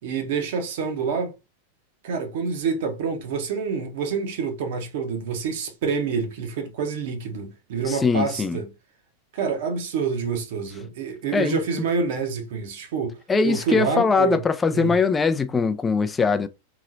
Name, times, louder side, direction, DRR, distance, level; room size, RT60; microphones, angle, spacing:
voice 1, 0.0-1.3 2.0-8.7 9.3-13.2 13.4-14.4 14.7-14.9, right 5 dB, 55° right, 0.9 m, -27 dB
voice 2, 7.8-8.6 11.3-11.9 13.3-16.5, left 4 dB, 15° left, 0.4 m, -22 dB
3.7 x 3.0 x 2.6 m
figure-of-eight pair, 90°, 0 cm